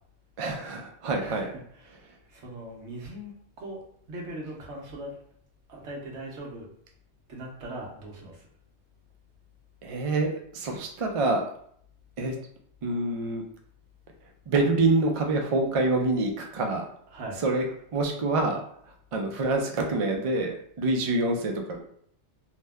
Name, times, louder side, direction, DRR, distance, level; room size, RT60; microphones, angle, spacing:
voice 1, 0.4-1.5 9.8-11.4 12.2-12.4 12.8-13.4 14.5-16.8 17.4-17.6 17.9-18.6 19.1-21.8, right 2 dB, 55° right, 2 dB, 0.3 m, -26 dB
voice 2, 1.2-2.0 2.3-3.3 3.6-3.8 4.1-5.2 5.7-6.7 7.3-8.5 17.1-17.4, right 1 dB, 80° right, -2 dB, 1.1 m, -40 dB
2.7 x 2.1 x 3.4 m, 0.65 s
omnidirectional pair, 1.2 m